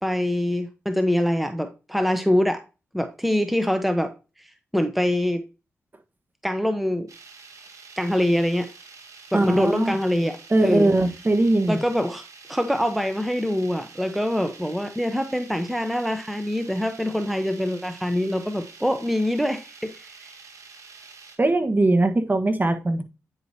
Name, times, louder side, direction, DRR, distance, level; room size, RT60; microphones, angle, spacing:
voice 1, 0.0-2.6 2.9-4.1 4.4-5.4 6.4-7.1 8.0-8.7 9.3-10.9 11.7-20.3, left 1 dB, ahead, 8 dB, 0.8 m, -24 dB
sound 1, 7.1-21.4, right 4 dB, 70° right, 1.5 m, -47 dB
voice 2, 9.3-10.0 10.5-11.8 21.4-23.0, right 2 dB, 30° right, 7 dB, 1.3 m, -20 dB
9.1 x 4.8 x 2.8 m, 0.30 s
supercardioid pair, 45°, 6 cm